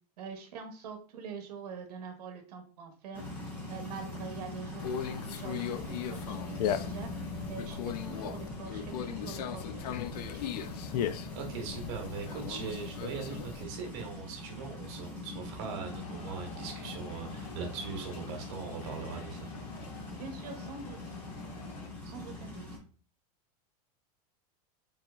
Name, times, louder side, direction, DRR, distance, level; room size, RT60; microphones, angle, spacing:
voice 1, 0.2-3.2 3.7-7.1 7.5-10.6 20.2-21.1 22.0-22.6, right 6 dB, 90° right, 5 dB, 0.9 m, -45 dB
sound 1, 3.1-22.8, left 2 dB, 10° left, 0.6 m, -42 dB
Conversation, 4.8-13.6, left 9 dB, 85° left, 0.4 m, -37 dB
voice 2, 11.3-19.9, right 5 dB, 45° right, 3 dB, 1.0 m, -40 dB
sound 2, 15.9-21.9, left 5 dB, 60° left, 0.9 m, -49 dB
3.8 x 2.9 x 2.3 m, 0.41 s
supercardioid pair, 180°, 20 cm